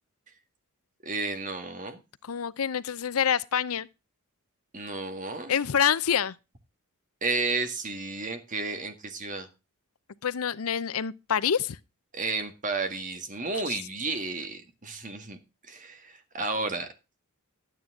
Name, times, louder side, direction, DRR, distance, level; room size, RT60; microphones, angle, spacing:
voice 1, 1.0-2.0 4.7-5.5 7.2-9.5 12.1-15.4 15.7-16.9, right 3 dB, 35° right, 1.8 m, -32 dB
voice 2, 2.2-3.9 5.5-6.3 10.2-11.8, left 8 dB, 70° left, 0.6 m, -26 dB
12.0 x 9.3 x 3.6 m
head